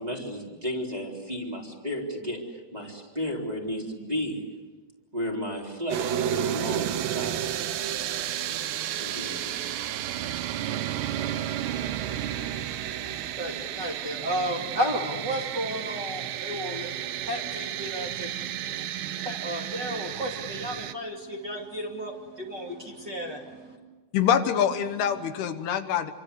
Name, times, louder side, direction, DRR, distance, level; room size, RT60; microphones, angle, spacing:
voice 1, 0.0-4.5 5.1-7.6 8.9-9.6, equal, 10° right, -2 dB, 3.5 m, -33 dB
sound 1, 5.9-20.9, right 11 dB, 85° right, 3.2 m, -32 dB
voice 2, 12.0-23.8 25.1-25.3, equal, 30° right, -1 dB, 2.8 m, -34 dB
voice 3, 24.1-26.1, left 8 dB, 75° left, 8 dB, 3.1 m, -25 dB
28.5 x 25.5 x 8.3 m, 1.3 s
omnidirectional pair, 4.7 m